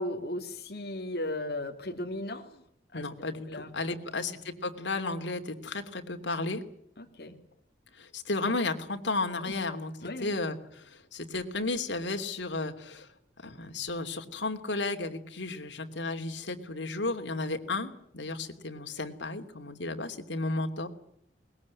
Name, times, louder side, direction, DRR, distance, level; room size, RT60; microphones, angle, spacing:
voice 1, 0.0-2.6 2.9-3.0 3.5-4.2 7.0-7.4 9.4-9.6 10.0-10.3, left 1 dB, 60° left, 2 dB, 2.8 m, -36 dB
voice 2, 2.9-6.6 7.9-9.9 10.2-13.1 13.4-20.9, left 3 dB, 90° left, 6 dB, 2.8 m, -33 dB
22.5 x 20.5 x 9.6 m, 0.71 s
head